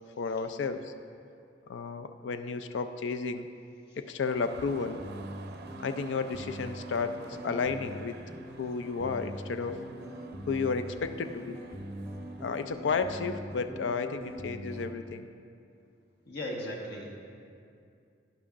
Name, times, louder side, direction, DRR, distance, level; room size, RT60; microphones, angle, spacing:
voice 1, 0.2-0.9 1.7-3.5 4.0-5.0 5.8-8.2 8.6-9.8 10.5-11.6 12.4-15.3, left 5 dB, 80° left, 9 dB, 0.4 m, -32 dB
sound 1, 4.2-12.7, right 4 dB, 60° right, 0.5 m, -52 dB
sound 2, 4.4-15.0, right 1 dB, 15° right, 0.6 m, -43 dB
voice 2, 16.3-17.1, left 1 dB, 65° left, -1 dB, 1.4 m, -37 dB
11.0 x 10.5 x 2.5 m, 2.4 s
head